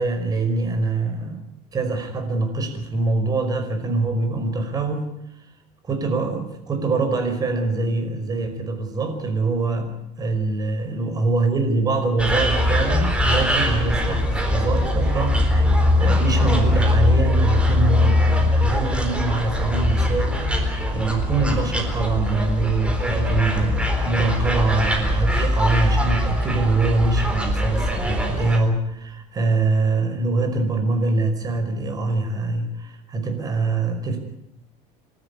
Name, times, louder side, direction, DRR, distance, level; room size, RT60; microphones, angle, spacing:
voice 1, 0.0-1.4 1.7-5.1 5.8-15.6 16.0-20.6 20.9-34.2, right 3 dB, 25° right, 6 dB, 5.3 m, -24 dB
sound 1, 12.2-28.6, left 1 dB, 5° right, 4.0 m, -21 dB
28.0 x 13.0 x 9.8 m, 0.80 s
cardioid pair, 140°, 16 cm